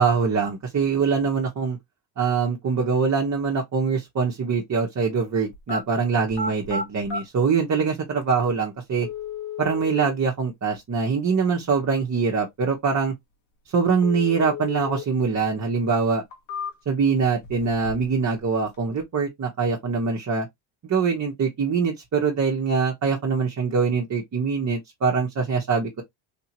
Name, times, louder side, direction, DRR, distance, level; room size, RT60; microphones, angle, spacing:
voice 1, 0.0-1.8 2.2-9.1 9.6-13.1 13.7-16.2 16.9-20.5 20.8-26.0, right 5 dB, 35° right, 1.1 m, -23 dB
sound 1, 5.5-5.8 6.3-7.2 8.2-8.3 9.0-10.0 14.0-15.0 15.4-15.5 16.1-17.0 17.4-18.2 18.4-19.0, left 4 dB, 65° left, 1.6 m, -33 dB
3.5 x 2.7 x 2.9 m
supercardioid pair, 85°, 49 cm